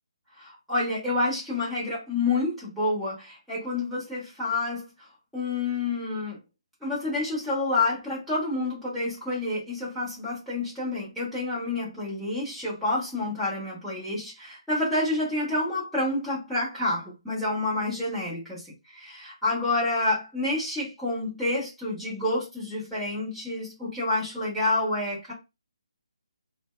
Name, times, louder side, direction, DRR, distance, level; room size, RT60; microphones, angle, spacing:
voice 1, 0.4-4.8 5.3-6.4 6.8-18.6 18.9-25.3, left 2 dB, ahead, 1.2 m, -28 dB
2.6 x 2.2 x 2.2 m
figure-of-eight pair, 150°, 3 cm